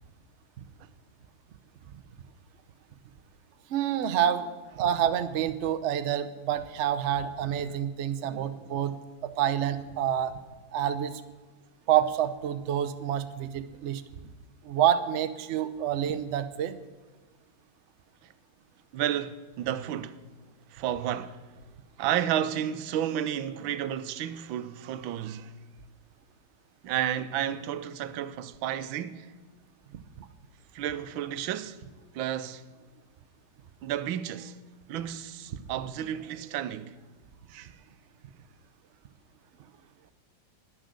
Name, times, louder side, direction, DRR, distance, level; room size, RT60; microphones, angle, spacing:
voice 1, 3.7-4.5 4.8-8.9 9.2-10.3 10.7-11.1 11.9-14.0 14.7-16.7, right 10 dB, 70° right, 0.6 m, -27 dB
voice 2, 8.2-8.7 18.9-20.2 20.7-21.4 22.0-25.5 26.8-29.3 30.7-31.8 32.1-32.6 33.8-34.5 34.9-36.9 37.5-37.7, right 10 dB, 90° right, 1.4 m, -32 dB
10.5 x 10.0 x 6.3 m
omnidirectional pair, 2.1 m